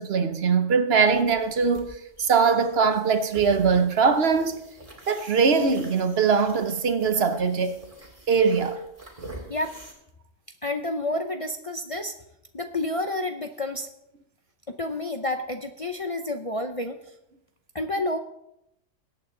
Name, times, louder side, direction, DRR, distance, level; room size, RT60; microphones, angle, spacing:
voice 1, 0.0-4.6 5.1-7.8 8.3-8.8, right 5 dB, 55° right, 1.1 m, -22 dB
sound 1, 1.1-9.9, right 1 dB, 30° right, 2.3 m, -46 dB
voice 2, 10.6-12.1 12.5-13.9 14.7-17.0 17.7-18.2, left 2 dB, 35° left, 0.6 m, -29 dB
21.5 x 8.6 x 3.8 m
omnidirectional pair, 1.3 m